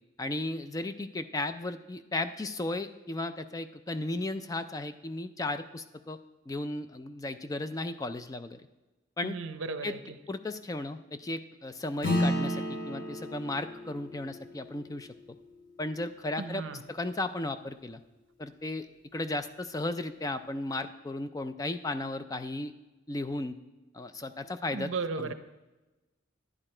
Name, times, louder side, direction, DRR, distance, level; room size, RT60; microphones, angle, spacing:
voice 1, 0.2-6.2 6.5-8.6 9.2-9.4 9.8-9.9 10.3-15.1 15.8-16.6 16.9-18.0 18.4-18.9 19.1-22.7 23.1-23.6 23.9-24.9 25.2-25.3, left 2 dB, 20° left, 10 dB, 0.3 m, -35 dB
voice 2, 9.2-10.2 16.4-16.8 24.7-25.3, right 4 dB, 70° right, 10 dB, 0.7 m, -35 dB
Acoustic guitar / Strum, 12.0-16.8, left 1 dB, 65° left, 3.0 m, -34 dB
11.0 x 9.9 x 4.3 m, 1.1 s
head